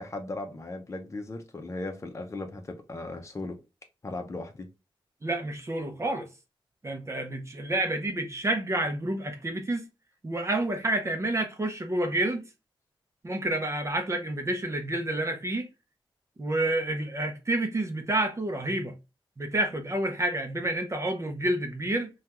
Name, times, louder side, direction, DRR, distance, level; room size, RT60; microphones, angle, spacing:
voice 1, 0.0-3.6 4.0-4.7, left 2 dB, 30° left, 0.7 m, -37 dB
voice 2, 5.2-6.3 6.8-9.8 10.2-12.4 13.2-15.7 16.4-18.9 19.4-22.1, right 1 dB, 30° right, 0.7 m, -29 dB
3.3 x 2.3 x 2.9 m
wide cardioid pair, 85°, 10 cm